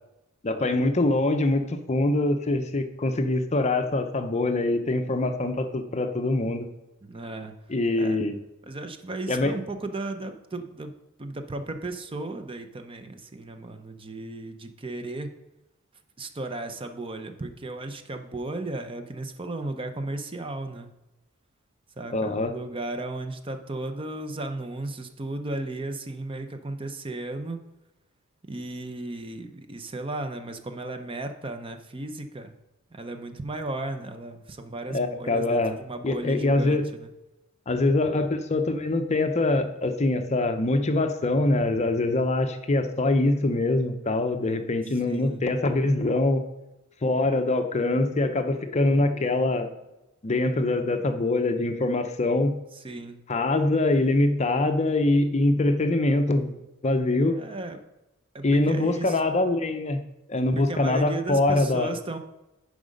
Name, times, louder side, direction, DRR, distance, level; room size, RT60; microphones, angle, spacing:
voice 1, 0.4-6.7 7.7-8.4 9.3-9.5 22.1-22.5 34.9-35.8 36.0-36.9 37.7-46.5 47.0-49.7 50.2-52.6 53.3-56.6 56.8-57.4 58.4-60.0 60.3-61.9, left 2 dB, 35° left, 8 dB, 0.6 m, -24 dB
voice 2, 7.0-7.5 7.9-8.2 8.7-10.9 11.2-15.3 16.2-20.9 22.0-27.6 28.4-32.5 32.9-37.1 45.1-45.5 52.7-53.2 57.4-57.8 58.3-59.2 60.4-62.2, right 2 dB, 25° right, 7 dB, 0.6 m, -35 dB
10.0 x 5.0 x 5.2 m, 0.95 s
head